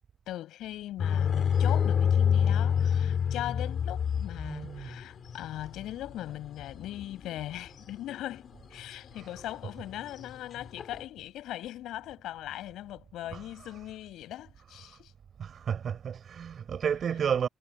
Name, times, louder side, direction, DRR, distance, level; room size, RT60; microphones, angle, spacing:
voice 1, 0.3-15.1, left 13 dB, 85° left, 7.9 m, -40 dB
sound 1, 1.0-7.8 8.4-8.9 9.2-9.3 9.7-11.0, left 8 dB, 60° left, 3.4 m, -27 dB
voice 2, 4.4-5.0 13.3-13.4 15.4-17.5, right 7 dB, 55° right, 7.0 m, -31 dB
cardioid pair, 90°, 0 cm